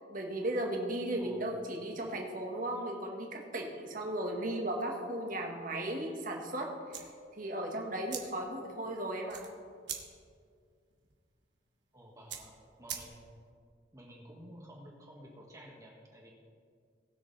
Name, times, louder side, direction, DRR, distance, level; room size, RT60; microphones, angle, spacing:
voice 1, 0.0-7.1 7.4-9.4, right 1 dB, 50° right, 1 dB, 1.7 m, -36 dB
voice 2, 1.2-1.5 11.9-13.2 13.9-16.3, equal, 20° right, -2 dB, 1.6 m, -52 dB
sound 1, 6.8-13.5, right 9 dB, 90° right, 1.3 m, -46 dB
19.0 x 6.6 x 4.1 m, 2.2 s
head